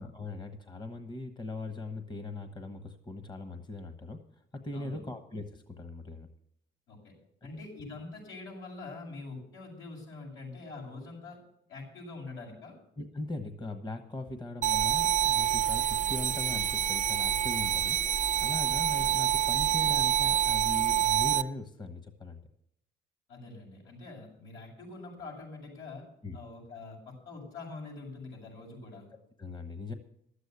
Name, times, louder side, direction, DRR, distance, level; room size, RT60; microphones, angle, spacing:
voice 1, 0.0-4.2 4.5-6.3 13.0-22.4 26.2-26.4 29.4-29.9, left 2 dB, 20° left, 8 dB, 1.2 m, -40 dB
voice 2, 4.7-5.1 6.9-7.1 7.4-11.4 11.7-12.7 19.5-19.8 23.3-26.0 26.3-29.1, left 3 dB, 80° left, -3 dB, 7.4 m, -44 dB
sound 1, 14.6-21.4, right 11 dB, 40° right, 0.6 m, -27 dB
12.5 x 8.2 x 8.2 m, 0.77 s
cardioid pair, 90°, 20 cm